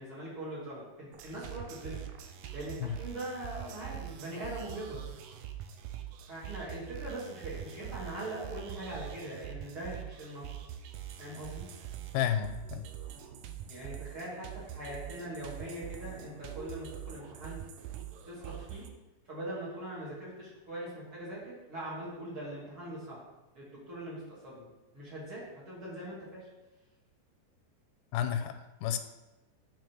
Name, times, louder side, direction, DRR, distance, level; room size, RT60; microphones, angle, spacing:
voice 1, 0.0-2.0 2.5-5.0 6.3-10.4 11.2-11.7 13.7-17.6 18.3-18.9 19.3-23.2 23.5-24.7 24.9-26.5, right 1 dB, 35° right, -7 dB, 2.8 m, -41 dB
sound 1, 1.1-18.9, right 11 dB, 85° right, 1.8 m, -44 dB
voice 2, 12.1-12.8 28.1-28.5 28.8-29.0, left 9 dB, 85° left, 9 dB, 2.7 m, -30 dB
9.4 x 4.8 x 4.7 m, 1.1 s
omnidirectional pair, 4.5 m